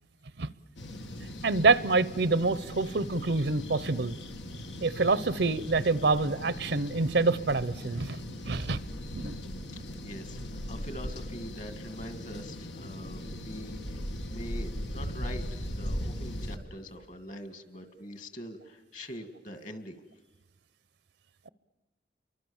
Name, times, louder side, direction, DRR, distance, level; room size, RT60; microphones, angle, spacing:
sound 1, 0.8-16.6, equal, 85° left, 2.0 m, -39 dB
voice 1, 1.4-4.2 4.8-8.2 8.5-8.8 9.1-9.4 9.7-9.8, right 3 dB, 70° right, 18 dB, 0.8 m, -26 dB
voice 2, 9.7-20.0, equal, 45° left, 10 dB, 2.3 m, -44 dB
30.0 x 24.0 x 7.2 m, 1.2 s
head